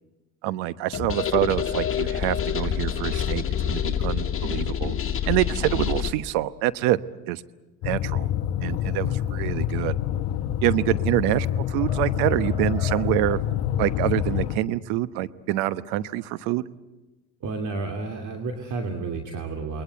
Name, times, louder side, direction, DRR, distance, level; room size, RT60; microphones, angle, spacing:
voice 1, 0.4-4.9 5.3-7.0 7.3-7.4 7.8-8.3 8.6-10.0 10.6-13.4 13.8-16.6, right 15 dB, 65° right, 15 dB, 1.1 m, -26 dB
sound 1, 0.9-6.1, left 9 dB, 30° left, 2.5 m, -27 dB
sound 2, 7.8-14.6, left 10 dB, 60° left, 1.1 m, -26 dB
sound 3, 10.5-11.0 11.4-13.5, left 2 dB, 15° right, 7.4 m, -42 dB
voice 2, 17.4-19.8, right 3 dB, 45° right, 3 dB, 2.8 m, -31 dB
28.5 x 21.5 x 8.2 m, 1.1 s
hypercardioid pair, 80°, 43 cm